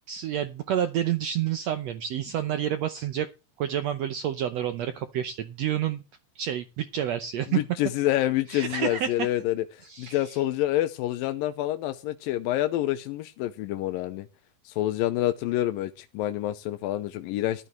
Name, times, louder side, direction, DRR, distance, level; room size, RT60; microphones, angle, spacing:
voice 1, 0.1-3.3 3.6-6.0 6.3-7.6 8.5-9.1 9.8-10.4, right 10 dB, 80° right, 9 dB, 1.5 m, -29 dB
voice 2, 7.5-14.3 14.7-17.7, left 14 dB, 85° left, 9 dB, 2.5 m, -27 dB
15.0 x 12.0 x 3.2 m, 0.29 s
omnidirectional pair, 4.0 m